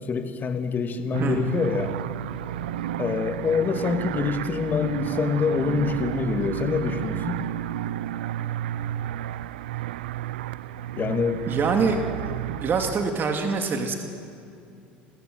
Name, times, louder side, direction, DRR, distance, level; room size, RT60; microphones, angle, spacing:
voice 1, 0.0-2.0 3.0-7.4 11.0-11.4, left 5 dB, 35° left, 6 dB, 2.4 m, -26 dB
sound 1, 1.1-13.1, right 12 dB, 80° right, 0.5 m, -32 dB
voice 2, 11.5-12.0 12.5-13.9, right 5 dB, 40° right, 3 dB, 2.5 m, -24 dB
28.0 x 14.5 x 8.0 m, 2.5 s
hypercardioid pair, 75°, 5 cm